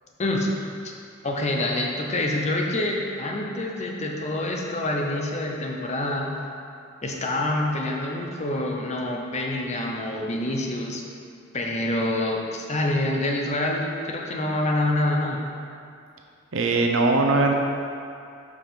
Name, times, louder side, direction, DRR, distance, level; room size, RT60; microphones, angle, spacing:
voice 1, 0.2-0.5 0.8-0.9 1.2-6.3 7.0-11.0 11.5-15.4, left 1 dB, 35° left, 0 dB, 0.7 m, -26 dB
voice 2, 16.5-17.5, right 3 dB, 70° right, 1 dB, 0.7 m, -20 dB
5.3 x 4.8 x 5.7 m, 2.5 s
head